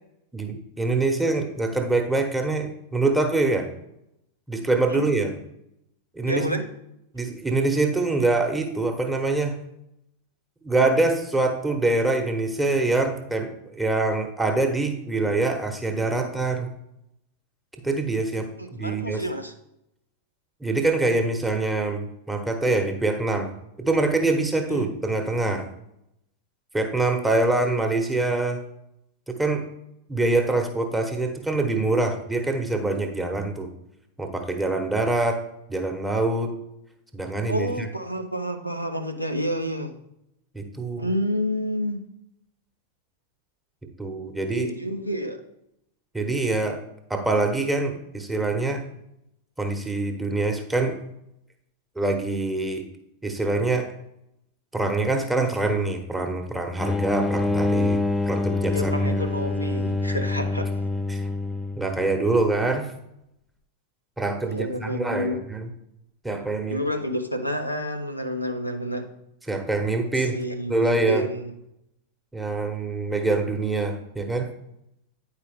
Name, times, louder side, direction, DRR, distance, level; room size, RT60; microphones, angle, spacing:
voice 1, 0.3-3.7 4.5-5.3 6.1-6.6 7.1-9.6 10.6-16.7 17.8-19.2 20.6-23.5 23.8-25.6 26.7-28.6 29.3-29.7 30.1-33.7 34.2-35.4 35.7-36.5 37.1-37.9 40.5-41.1 44.0-44.7 46.1-46.8 47.1-48.8 49.6-51.0 52.0-52.8 53.2-53.9 54.7-59.2 61.1-61.3 61.8-62.9 64.2-65.7 66.2-66.8 69.5-70.4 70.7-71.3 72.3-74.5, right 2 dB, 5° right, 3 dB, 1.0 m, -25 dB
voice 2, 6.3-6.7 18.6-19.5 24.7-24.9 37.5-39.9 41.0-42.1 44.5-45.4 58.7-60.7 64.4-65.4 66.7-69.1 70.3-71.5, equal, 90° left, 5 dB, 0.6 m, -29 dB
sound 1, 56.8-62.2, left 2 dB, 10° left, 0.4 m, -25 dB
9.0 x 4.8 x 3.5 m, 0.81 s
figure-of-eight pair, 90°, 0 cm